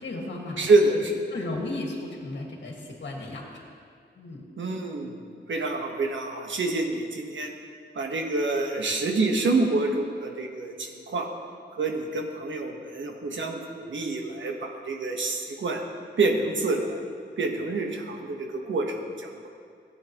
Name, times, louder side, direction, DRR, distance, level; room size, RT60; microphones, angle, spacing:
voice 1, 0.0-1.0 1.3-3.4 4.2-4.4, left 2 dB, 70° left, -1 dB, 1.8 m, -35 dB
voice 2, 0.6-1.1 4.6-5.2 5.5-7.5 7.9-11.3 11.7-15.8 16.2-17.1 17.4-19.5, right 3 dB, 85° right, 2 dB, 1.2 m, -27 dB
16.5 x 8.8 x 3.0 m, 2.2 s
wide cardioid pair, 95°, 19 cm